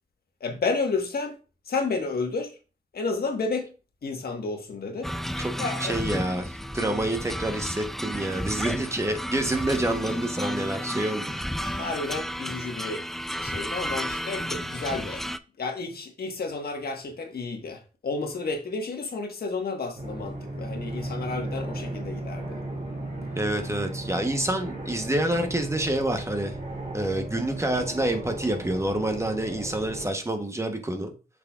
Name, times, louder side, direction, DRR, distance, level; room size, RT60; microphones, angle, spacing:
voice 1, 0.4-1.4 1.7-2.6 2.9-3.7 4.0-5.1 5.6-6.0 11.6-13.0 13.4-15.2 15.6-22.6, left 3 dB, 70° left, 1.4 m, -31 dB
sound 1, 5.0-15.4, equal, ahead, 0.3 m, -32 dB
voice 2, 5.8-11.3 23.4-26.5 26.9-31.1, right 1 dB, 15° right, 1.0 m, -27 dB
sound 2, 20.0-30.1, right 2 dB, 45° right, 3.3 m, -35 dB
7.3 x 6.0 x 2.4 m
wide cardioid pair, 90°, 17 cm